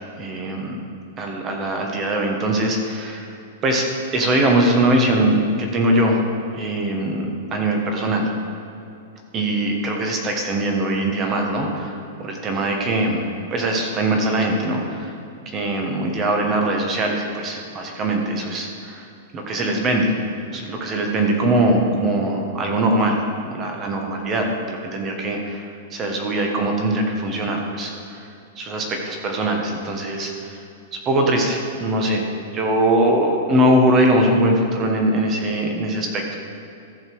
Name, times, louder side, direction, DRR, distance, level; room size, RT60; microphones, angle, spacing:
voice 1, 0.2-0.8 1.2-3.3 3.6-3.8 4.1-6.2 6.5-7.3 7.5-8.3 9.3-13.2 13.5-15.1 15.5-19.0 19.3-20.1 20.5-23.2 23.5-28.2 28.6-30.6 31.0-32.2 32.5-36.4, right 1 dB, 20° right, 2 dB, 1.4 m, -21 dB
14.5 x 6.7 x 4.8 m, 2.6 s
supercardioid pair, 160°, 0 cm